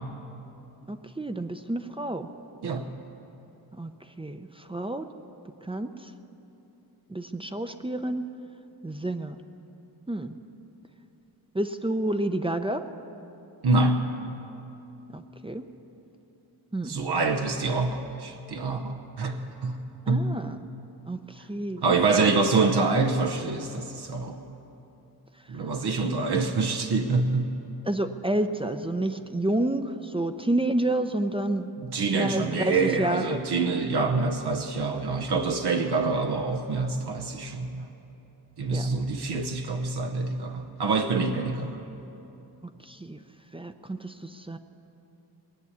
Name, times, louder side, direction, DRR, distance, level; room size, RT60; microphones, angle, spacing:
voice 1, 0.9-2.3 3.8-3.9 4.2-5.1 5.6-6.1 7.1-8.2 8.8-9.4 10.1-10.4 11.5-12.8 15.1-15.7 16.7-17.0 20.1-20.6 21.1-22.3 25.5-25.6 26.0-26.2 27.8-31.7 32.1-33.4 38.7-38.9 41.6-41.7 42.6-43.2 43.5-44.6, right 1 dB, 15° right, 8 dB, 0.6 m, -30 dB
voice 2, 13.6-14.1 16.8-19.8 20.1-20.3 21.8-24.4 25.5-27.5 31.9-37.9 38.6-41.8, right 3 dB, 75° right, 4 dB, 1.0 m, -26 dB
20.0 x 7.0 x 9.7 m, 3.0 s
wide cardioid pair, 90°, 39 cm